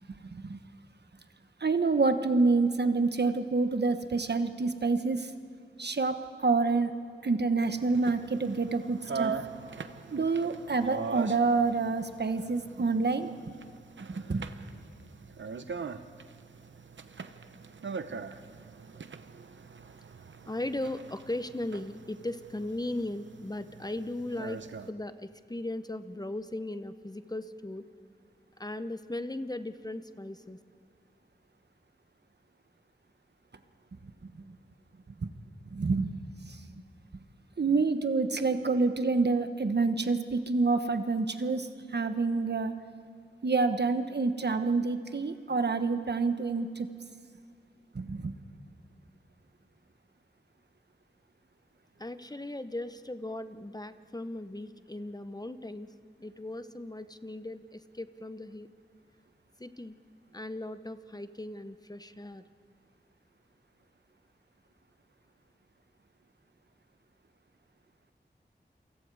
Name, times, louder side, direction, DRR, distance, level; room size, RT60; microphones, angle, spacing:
voice 1, 1.6-5.3 5.8-6.9 7.2-9.3 10.1-13.3 14.1-14.5 34.2-34.3 35.2-35.3 35.7-36.1 36.4-36.6 37.6-42.7 43.4-46.9 47.9-48.3, right 4 dB, 65° right, 8 dB, 1.3 m, -27 dB
sound 1, 7.6-24.9, right 5 dB, 85° right, 0.9 m, -42 dB
voice 2, 20.5-24.6 24.9-27.8 28.6-30.6 52.0-55.9 56.2-58.7 59.6-60.0 60.3-62.4, left 1 dB, 20° left, 11 dB, 0.9 m, -37 dB
28.5 x 23.5 x 4.9 m, 2.2 s
cardioid pair, 40°, 19 cm